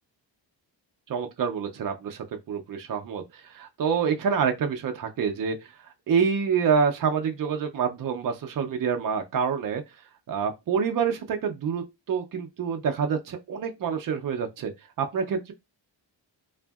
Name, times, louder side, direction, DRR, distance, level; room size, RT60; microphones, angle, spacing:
voice 1, 1.1-5.6 6.1-9.8 10.3-14.7 15.0-15.5, right 6 dB, 50° right, 0.5 m, -27 dB
2.6 x 2.5 x 2.3 m
wide cardioid pair, 160°, 44 cm